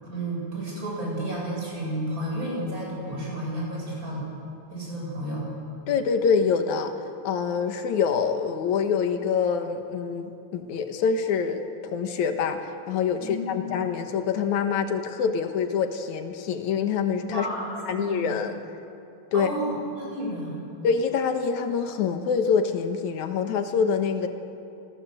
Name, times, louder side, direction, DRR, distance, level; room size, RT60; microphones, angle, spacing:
voice 1, 0.0-4.3 4.7-5.5 13.2-13.7 17.3-18.3 19.3-20.6, right 1 dB, 25° right, -3 dB, 8.4 m, -31 dB
voice 2, 5.9-6.9 7.2-17.5 17.9-18.6 19.3-19.5 20.8-24.3, left 6 dB, 80° left, 6 dB, 2.8 m, -25 dB
27.5 x 18.5 x 7.9 m, 2.6 s
omnidirectional pair, 3.3 m